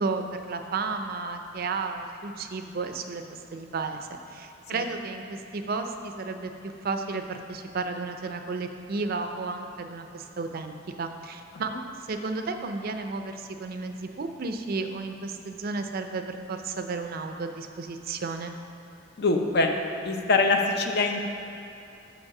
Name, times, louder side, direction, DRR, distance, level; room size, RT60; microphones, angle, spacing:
voice 1, 0.0-11.7 12.1-18.6, right 3 dB, 50° right, 6 dB, 0.4 m, -33 dB
voice 2, 19.2-19.7 20.0-21.3, left 3 dB, 55° left, 4 dB, 0.6 m, -23 dB
6.4 x 5.3 x 5.9 m, 2.8 s
head